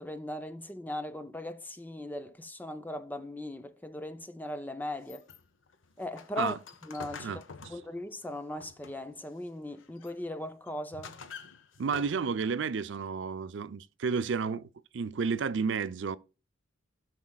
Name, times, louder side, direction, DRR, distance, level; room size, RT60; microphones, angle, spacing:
voice 1, 0.0-5.3 6.0-6.6 6.8-7.4 7.7-11.2, left 1 dB, 10° left, 0.5 m, -39 dB
sound 1, 5.0-9.2 9.6-10.2 10.7-12.6, left 5 dB, 85° left, 0.8 m, -48 dB
voice 2, 7.2-7.7 11.8-16.2, right 5 dB, 70° right, 0.5 m, -32 dB
17.0 x 6.0 x 2.3 m
head